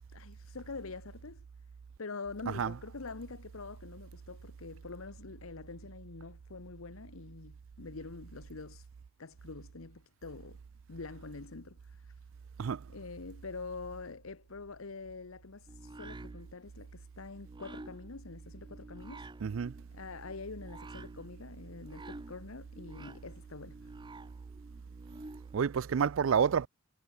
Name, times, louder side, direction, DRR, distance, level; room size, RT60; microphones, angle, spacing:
voice 1, 0.1-1.4 2.0-8.9 9.2-10.6 10.9-12.1 12.9-19.3 19.9-23.9, left 4 dB, 75° left, 1.0 m, -45 dB
sound 1, 15.7-25.7, right 2 dB, 20° right, 0.9 m, -51 dB
voice 2, 19.4-19.7 25.5-26.7, right 7 dB, 65° right, 0.4 m, -29 dB
head